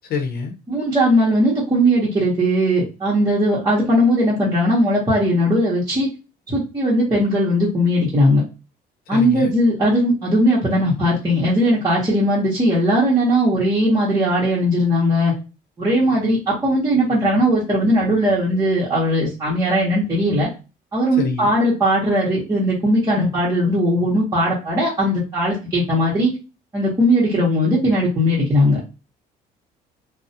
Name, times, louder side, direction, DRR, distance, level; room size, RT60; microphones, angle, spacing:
voice 1, 0.0-0.5 9.1-9.5 21.1-21.5 23.1-23.3, left 5 dB, 65° left, 4 dB, 0.7 m, -26 dB
voice 2, 0.7-6.1 6.5-8.4 9.1-15.3 15.8-20.5 20.9-26.3 26.7-28.8, equal, 20° right, -7 dB, 0.9 m, -18 dB
2.4 x 2.1 x 2.7 m, 0.30 s
cardioid pair, 110°, 17 cm